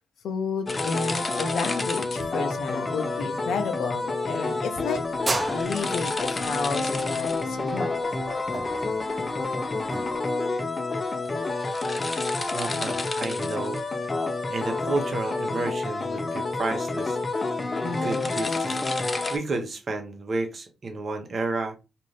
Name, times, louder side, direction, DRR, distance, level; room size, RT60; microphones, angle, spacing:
voice 1, 0.2-5.0 5.5-8.0 17.8-18.3, left 5 dB, 70° left, 0.6 m, -31 dB
sound 1, 0.7-19.4, left 3 dB, 35° left, 0.6 m, -28 dB
sound 2, 4.7-10.2, right 2 dB, 25° right, 0.4 m, -34 dB
voice 2, 12.5-14.2 14.5-17.2 17.8-18.8 19.3-21.8, right 3 dB, 50° right, 0.9 m, -31 dB
2.5 x 2.5 x 3.2 m
supercardioid pair, 50°, 0 cm